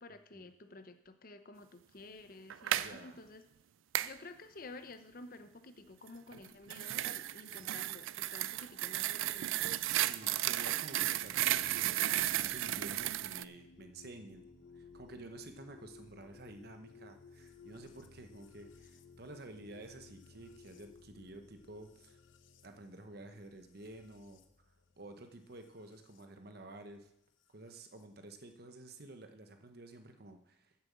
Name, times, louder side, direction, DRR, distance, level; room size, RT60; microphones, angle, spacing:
voice 1, 0.0-3.4 4.0-9.6, left 2 dB, 45° left, 10 dB, 0.8 m, -52 dB
sound 1, 2.5-2.9 3.9-4.1 6.3-13.4, right 13 dB, 85° right, 0.4 m, -34 dB
voice 2, 2.7-3.2 7.5-7.7 9.9-14.5 14.7-22.2 22.6-27.1 27.5-30.8, right 2 dB, 55° right, 6 dB, 1.0 m, -51 dB
sound 2, 11.2-26.3 27.4-28.0, left 4 dB, 80° left, 0.9 m, -58 dB
8.8 x 7.7 x 7.3 m, 0.80 s
head